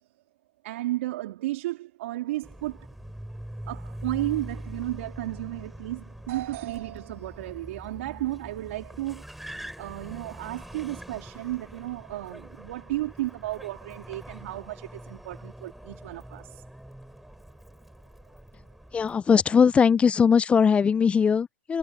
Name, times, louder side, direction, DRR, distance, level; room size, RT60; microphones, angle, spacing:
voice 1, 0.6-2.9 3.7-9.2 9.8-16.6, right 16 dB, 70° right, 3.1 m, -33 dB
Car, 2.4-19.2, right 1 dB, ahead, 7.8 m, -43 dB
voice 2, 18.9-21.8, left 6 dB, 15° left, 0.4 m, -20 dB
hypercardioid pair, 125°, 7 cm